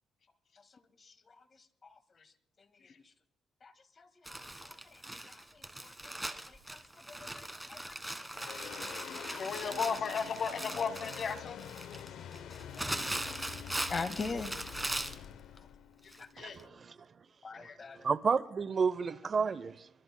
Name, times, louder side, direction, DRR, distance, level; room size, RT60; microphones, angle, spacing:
voice 1, 1.0-1.4 3.6-5.9 6.2-8.2 8.4-8.8 9.3-9.4 12.8-13.0 13.4-13.5 13.9-14.6 16.2-16.3 17.4-18.1, left 4 dB, 35° left, 1.7 m, -43 dB
Crumpling crinkling, 4.3-15.3 16.1-16.2 16.6-16.7, right 1 dB, 10° right, 1.4 m, -40 dB
sound 1, 8.3-16.9, left 9 dB, 75° left, 0.7 m, -46 dB
voice 2, 9.3-11.6 16.0-16.6 17.6-17.8, left 6 dB, 55° left, 2.2 m, -35 dB
voice 3, 16.4-17.2 17.6-19.9, right 5 dB, 45° right, 0.7 m, -32 dB
24.5 x 22.0 x 2.2 m
cardioid pair, 90°, 0 cm